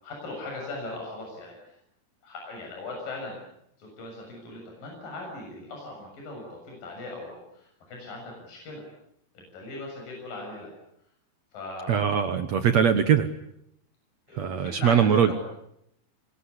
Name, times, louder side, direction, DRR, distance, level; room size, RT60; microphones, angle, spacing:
voice 1, 0.0-1.8 2.2-3.4 3.8-8.8 9.3-10.7 11.5-12.0 14.3-15.3, left 2 dB, 55° left, -1 dB, 8.7 m, -39 dB
voice 2, 11.9-13.3 14.3-15.3, right 8 dB, 65° right, 8 dB, 1.8 m, -22 dB
26.5 x 22.5 x 9.9 m, 0.78 s
omnidirectional pair, 4.7 m